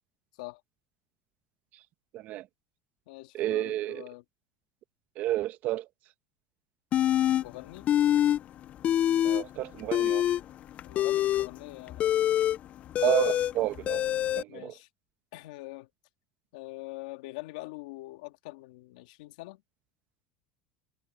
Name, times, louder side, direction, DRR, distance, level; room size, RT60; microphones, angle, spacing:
voice 1, 2.1-2.4 3.3-4.0 5.2-5.8 9.2-10.3 13.0-14.0 14.4-14.7, right 14 dB, 50° right, 1.4 m, -30 dB
voice 2, 3.1-4.2 7.4-7.9 10.8-12.1 14.5-14.9 15.3-15.9 16.5-19.6, left 21 dB, 85° left, 2.1 m, -44 dB
sound 1, 6.9-7.4 7.8-8.4 8.7-9.4 9.8-14.4, left 11 dB, 35° left, 0.4 m, -25 dB
supercardioid pair, 140°, 4 cm